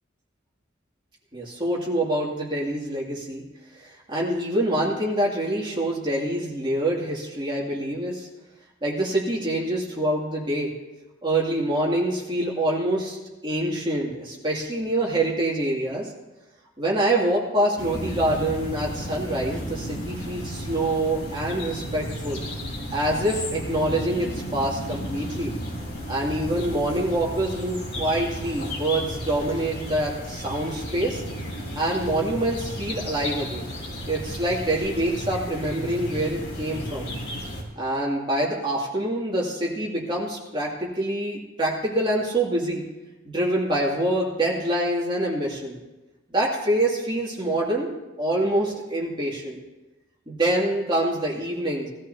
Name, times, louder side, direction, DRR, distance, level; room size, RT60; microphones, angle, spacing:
voice 1, 1.3-3.4 3.7-8.3 8.8-10.7 11.2-13.2 13.4-16.1 16.8-22.4 22.9-25.5 26.1-31.2 31.7-33.7 34.1-37.1 37.7-42.8 43.2-45.8 46.3-47.9 48.2-49.6 50.3-51.9, right 1 dB, 25° right, -4 dB, 2.6 m, -25 dB
sound 1, 17.8-37.6, equal, 55° left, 3.0 m, -33 dB
19.0 x 13.5 x 2.9 m, 1.1 s
head